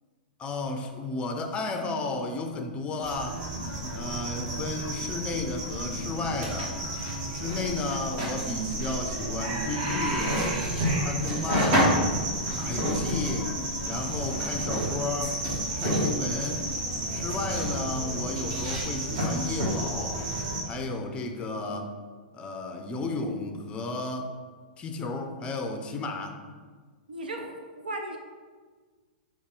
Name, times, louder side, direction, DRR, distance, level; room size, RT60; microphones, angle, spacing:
voice 1, 0.4-3.5 3.9-6.8 7.3-10.4 11.0-11.9 12.6-15.4 15.8-16.8 17.1-20.2 20.7-21.9 22.3-24.4 24.8-26.4, left 3 dB, 20° left, 5 dB, 0.5 m, -33 dB
sound 1, 3.0-20.6, right 1 dB, 50° right, 1.3 m, -29 dB
voice 2, 27.1-28.2, right 1 dB, 80° right, 3 dB, 0.7 m, -36 dB
5.3 x 2.4 x 3.8 m, 1.5 s
hypercardioid pair, 110°, 5 cm